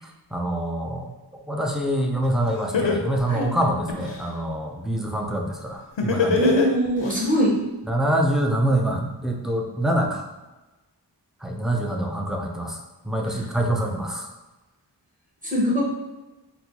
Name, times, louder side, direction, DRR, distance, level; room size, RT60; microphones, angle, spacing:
voice 1, 0.3-1.1 1.5-6.4 7.9-10.2 11.4-14.3, right 1 dB, ahead, 1 dB, 0.4 m, -25 dB
Laughter, 2.2-2.3 2.7-4.2 6.0-7.2, left 4 dB, 90° left, 0.6 m, -22 dB
voice 2, 6.3-7.5 13.3-13.5 15.4-15.8, equal, 20° right, -5 dB, 1.1 m, -22 dB
4.2 x 2.2 x 2.8 m, 1.1 s
wide cardioid pair, 50°, 43 cm